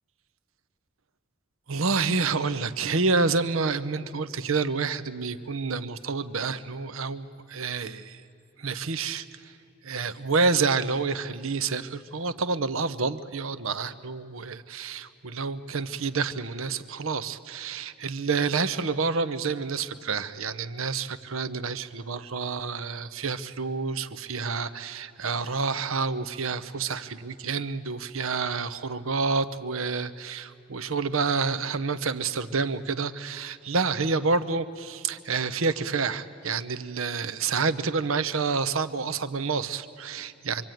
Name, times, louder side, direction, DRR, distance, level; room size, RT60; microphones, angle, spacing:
voice 1, 1.7-8.2 8.6-9.3 9.8-40.6, right 4 dB, 65° right, 13 dB, 0.8 m, -28 dB
25.5 x 24.0 x 9.1 m, 2.6 s
head